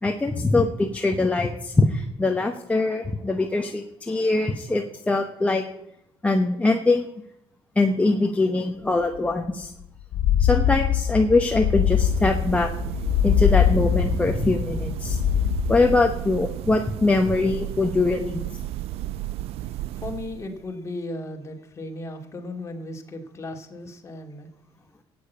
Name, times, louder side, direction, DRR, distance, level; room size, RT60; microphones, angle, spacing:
voice 1, 0.0-5.6 6.2-7.1 7.8-9.7 10.4-12.7 13.2-15.2 15.7-18.4, left 2 dB, 15° left, 3 dB, 1.0 m, -22 dB
sound 1, 9.1-9.2 9.5-9.6 10.0-16.2, left 9 dB, 85° left, 1.2 m, -23 dB
sound 2, 11.6-20.7, right 14 dB, 75° right, 0.4 m, -33 dB
voice 2, 19.2-24.5, left 2 dB, 30° left, 3 dB, 2.4 m, -36 dB
12.5 x 8.8 x 8.4 m, 0.82 s
cardioid pair, 115°, 10 cm